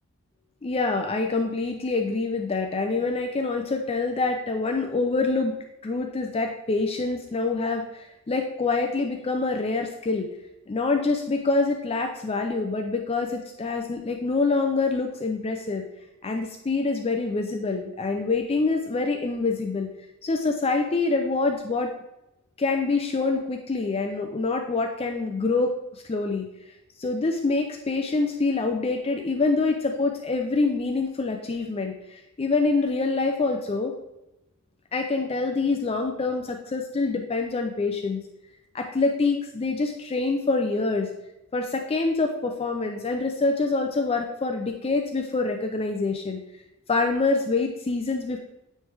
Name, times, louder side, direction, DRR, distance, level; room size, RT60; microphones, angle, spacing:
voice 1, 0.6-5.5 5.8-10.3 10.7-15.8 16.2-19.9 20.2-21.9 22.6-26.5 27.0-33.9 34.9-38.2 38.7-41.1 41.5-46.4 46.9-48.4, left 3 dB, 25° left, 4 dB, 0.4 m, -26 dB
9.4 x 3.3 x 3.3 m, 0.93 s
head